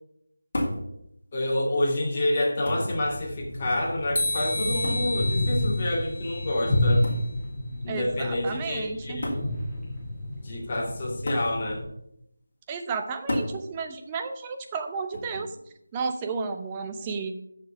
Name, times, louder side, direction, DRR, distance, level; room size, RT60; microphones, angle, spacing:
sound 1, 0.5-0.9 1.9-2.0 2.7-3.0 4.8-5.2 7.0-7.3 8.4-8.5 9.2-9.5 11.3-11.6 13.3-13.6 15.1-15.5, left 1 dB, 45° left, 3.0 m, -30 dB
voice 1, 1.3-7.1 7.8-9.4 10.4-11.8, left 1 dB, 30° left, -2 dB, 2.4 m, -28 dB
sound 2, 2.9-11.8, left 1 dB, ahead, 2.1 m, -30 dB
sound 3, 4.2-7.2, left 1 dB, 70° left, 1.6 m, -32 dB
voice 2, 7.9-9.2 12.7-15.5 15.9-17.3, right 5 dB, 15° right, 6 dB, 0.7 m, -32 dB
6.8 x 6.6 x 7.0 m, 0.76 s
figure-of-eight pair, 165°, 0 cm